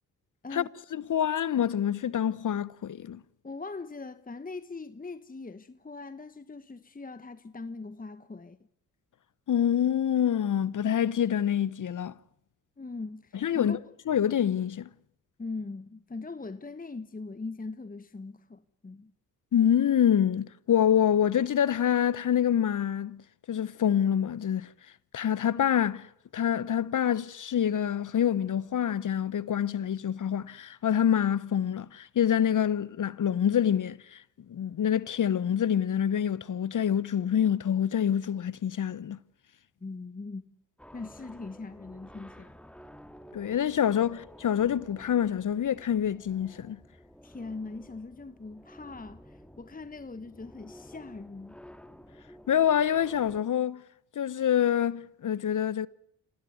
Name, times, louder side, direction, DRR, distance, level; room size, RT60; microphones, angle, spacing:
voice 1, 0.9-3.2 9.5-12.1 13.4-13.8 14.1-14.9 19.5-23.2 23.5-24.7 25.1-26.1 26.3-34.2 34.5-39.2 43.3-46.8 52.5-53.8 54.1-55.9, left 9 dB, 50° left, 1.0 m, -26 dB
voice 2, 3.4-8.6 12.8-13.8 15.4-19.1 39.8-40.5 40.9-42.6 47.2-51.6, left 3 dB, 20° left, 1.3 m, -41 dB
sound 1, 40.8-53.4, equal, 5° left, 2.0 m, -52 dB
27.0 x 19.0 x 9.4 m
hypercardioid pair, 50°, 40 cm